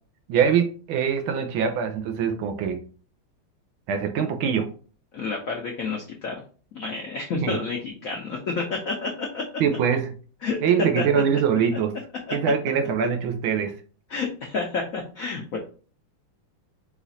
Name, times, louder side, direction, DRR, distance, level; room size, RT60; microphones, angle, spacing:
voice 1, 0.3-2.8 3.9-4.7 7.4-7.6 9.6-10.1 10.6-11.9 12.3-13.7, right 7 dB, 75° right, 6 dB, 1.4 m, -23 dB
voice 2, 5.1-6.4 6.7-9.4 10.4-10.6 10.9-11.0 12.3-12.4 14.1-15.6, left 4 dB, 85° left, 1 dB, 0.7 m, -29 dB
5.0 x 2.5 x 4.0 m, 0.40 s
omnidirectional pair, 2.4 m